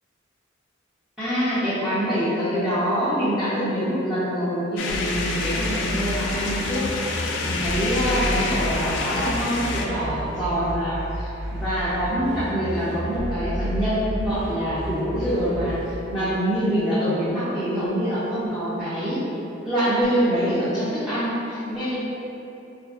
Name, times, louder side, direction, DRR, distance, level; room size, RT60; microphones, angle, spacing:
voice 1, 1.2-6.8 7.4-11.0 11.2-15.7 16.1-19.2 19.6-22.0, equal, 5° right, -16 dB, 0.6 m, -25 dB
sound 1, 4.8-9.9, left 3 dB, 60° left, 0.3 m, -28 dB
sound 2, 4.9-15.9, equal, 60° right, 0.6 m, -32 dB
3.9 x 2.6 x 2.3 m, 2.9 s
head